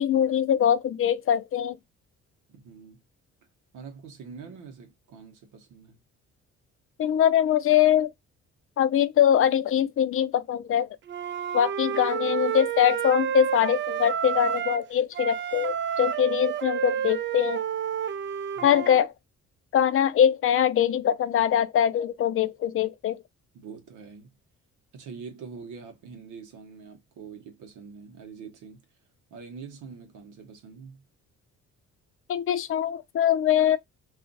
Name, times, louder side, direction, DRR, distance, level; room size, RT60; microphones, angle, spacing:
voice 1, 0.0-1.8 7.0-8.1 8.8-10.9 11.5-17.6 18.6-19.1 19.7-23.2 32.3-33.8, left 10 dB, 45° left, 0.4 m, -23 dB
voice 2, 2.5-3.0 3.7-6.0 18.5-18.8 23.5-24.3 24.9-28.8 29.3-31.0, right 5 dB, 85° right, 1.0 m, -44 dB
Wind instrument woodwind instrument, 11.1-14.9 15.1-19.0, right 9 dB, 40° right, 0.4 m, -30 dB
2.5 x 2.4 x 3.8 m
cardioid pair, 90°, 30 cm